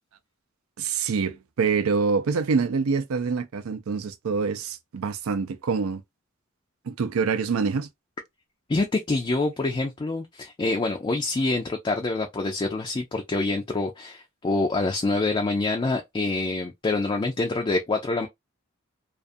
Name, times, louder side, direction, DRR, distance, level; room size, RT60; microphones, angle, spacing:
voice 1, 0.8-6.0 6.9-7.9, right 5 dB, 90° right, 0.5 m, -26 dB
voice 2, 8.7-18.3, left 2 dB, 25° left, 0.4 m, -26 dB
2.4 x 2.4 x 2.5 m
head